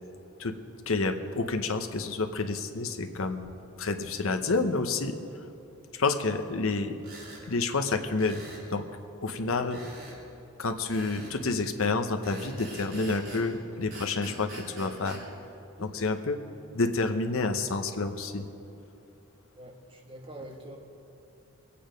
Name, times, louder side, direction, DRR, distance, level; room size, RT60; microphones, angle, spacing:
voice 1, 0.9-3.5 3.8-5.5 5.9-6.9 7.5-8.4 8.7-8.8 9.2-9.8 10.6-15.2 15.8-16.4 16.7-18.5, left 3 dB, 70° left, 7 dB, 0.9 m, -29 dB
sound 1, 7.0-7.4 8.2-8.7 9.7-10.2 10.9-11.4 12.2-13.5 13.9-15.2, right 1 dB, 65° right, 4.3 m, -44 dB
voice 2, 15.8-16.1 19.6-20.8, right 1 dB, 25° right, 0 dB, 1.4 m, -45 dB
22.0 x 8.6 x 5.2 m, 2.7 s
head